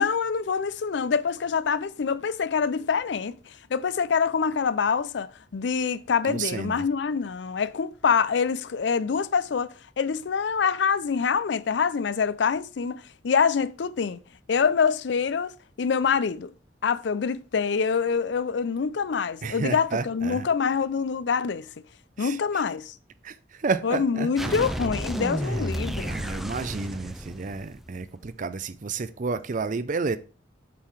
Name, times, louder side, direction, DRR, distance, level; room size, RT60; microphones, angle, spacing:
voice 1, 0.0-14.2 14.5-15.5 15.8-16.5 16.8-21.7 22.2-23.0 23.8-26.1, left 6 dB, 70° left, 0.5 m, -25 dB
voice 2, 6.2-6.8 19.4-20.5 22.2-22.6 23.2-24.6 26.0-30.2, right 4 dB, 45° right, 0.5 m, -31 dB
sound 1, 24.4-28.1, equal, ahead, 0.6 m, -32 dB
8.5 x 3.8 x 4.7 m
head